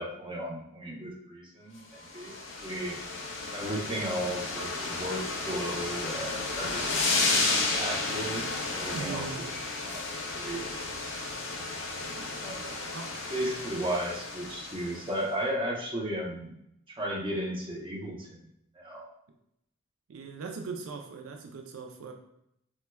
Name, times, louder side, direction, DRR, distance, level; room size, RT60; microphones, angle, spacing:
voice 1, 0.0-3.0 3.5-9.3 9.8-10.0 10.3-10.7 12.4-12.8 13.3-16.5 16.9-18.4 18.7-19.1, right 1 dB, 25° right, -3 dB, 0.6 m, -35 dB
sound 1, 2.0-15.2, left 3 dB, 60° left, 0.5 m, -32 dB
voice 2, 8.9-9.5 12.0-13.2 20.1-22.1, right 4 dB, 75° right, 3 dB, 0.4 m, -41 dB
4.3 x 2.1 x 2.2 m, 0.78 s
head